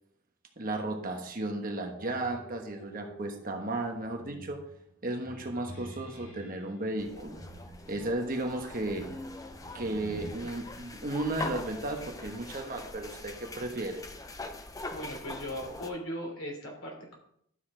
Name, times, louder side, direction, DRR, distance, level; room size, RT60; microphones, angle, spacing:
voice 1, 0.6-4.6 5.0-7.4 7.9-9.0 9.7-14.0, right 2 dB, 40° right, 4 dB, 1.2 m, -34 dB
sound 1, 2.0-6.7 7.4-10.3, right 1 dB, 35° left, 3.2 m, -47 dB
sound 2, 7.0-15.9, left 2 dB, 15° left, 0.5 m, -43 dB
voice 2, 14.9-17.2, equal, 65° left, 0 dB, 3.3 m, -38 dB
12.0 x 6.9 x 3.8 m, 0.69 s
head